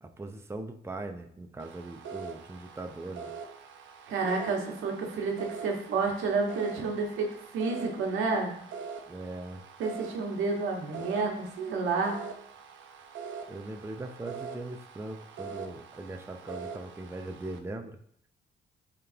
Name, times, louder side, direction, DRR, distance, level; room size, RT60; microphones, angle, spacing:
voice 1, 0.0-3.3 9.1-9.6 13.5-18.0, right 2 dB, 15° right, 5 dB, 0.7 m, -40 dB
sound 1, 1.6-17.6, right 6 dB, 75° right, 0.9 m, -44 dB
voice 2, 4.1-8.6 9.8-12.2, right 4 dB, 90° right, 0 dB, 1.6 m, -30 dB
10.5 x 3.7 x 2.9 m, 0.67 s
cardioid pair, 90°, 20 cm